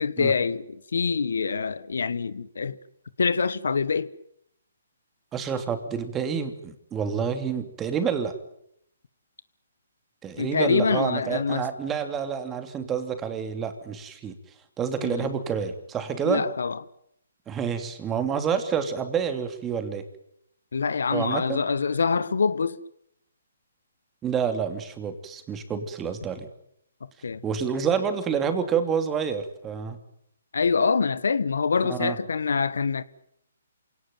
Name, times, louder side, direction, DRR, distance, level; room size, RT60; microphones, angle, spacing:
voice 1, 0.0-2.8 3.2-4.1 10.4-11.7 15.0-15.3 16.2-16.8 20.7-22.8 27.2-27.4 30.5-33.0, left 5 dB, 75° left, 1.3 m, -25 dB
voice 2, 5.3-8.3 10.2-14.3 14.8-16.4 17.5-20.0 21.1-21.6 24.2-26.5 27.4-30.0 31.9-32.2, right 7 dB, 15° right, 2.8 m, -28 dB
26.5 x 18.0 x 9.3 m
hypercardioid pair, 145°, 0 cm